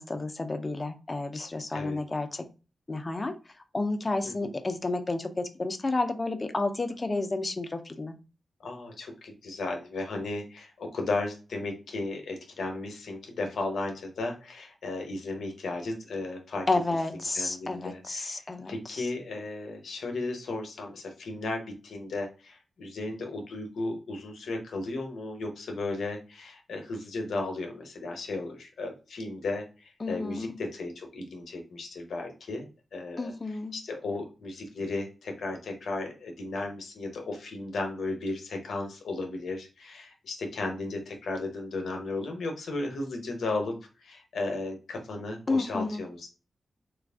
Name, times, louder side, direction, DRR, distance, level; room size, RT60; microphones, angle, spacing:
voice 1, 0.0-2.4 2.9-3.3 3.7-8.1 16.7-19.1 30.0-30.5 33.2-33.7 45.5-46.0, left 2 dB, 40° left, 8 dB, 0.6 m, -31 dB
voice 2, 8.6-16.7 17.1-18.4 18.7-46.3, left 2 dB, 80° left, 3 dB, 0.9 m, -35 dB
3.2 x 2.4 x 3.5 m, 0.33 s
cardioid pair, 45°, 0 cm